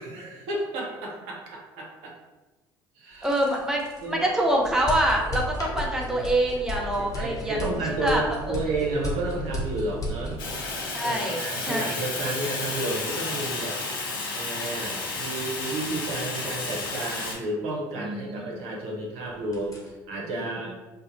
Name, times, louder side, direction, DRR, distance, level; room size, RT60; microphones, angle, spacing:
voice 1, 0.0-2.1 3.0-3.3 4.0-4.3 7.2-10.4 11.0-13.8 14.3-20.7, right 2 dB, 65° right, -2 dB, 0.6 m, -32 dB
sound 1, 3.1-18.9 19.2-19.9, left 1 dB, 30° left, 0.8 m, -36 dB
voice 2, 3.2-3.8 4.1-8.5 10.9-11.4 11.7-12.0 18.0-18.6, right 1 dB, 5° right, -1 dB, 0.5 m, -26 dB
Fire, 10.4-17.3, left 3 dB, 80° left, 0.5 m, -32 dB
2.4 x 2.1 x 2.9 m, 1.2 s
hypercardioid pair, 55°, 11 cm